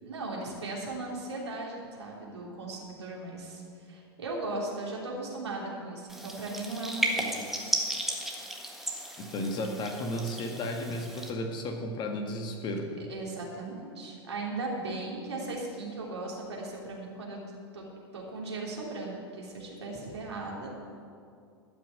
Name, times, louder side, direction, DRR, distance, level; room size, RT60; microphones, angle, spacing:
voice 1, 0.0-7.5 13.1-17.4 17.7-17.8 18.1-20.7, right 2 dB, 75° right, -3 dB, 3.1 m, -37 dB
sound 1, 6.1-11.3, right 1 dB, ahead, 1.5 m, -34 dB
voice 2, 9.2-12.9, left 1 dB, 30° left, 3 dB, 1.7 m, -33 dB
13.0 x 6.1 x 8.8 m, 2.4 s
figure-of-eight pair, 95°, 14 cm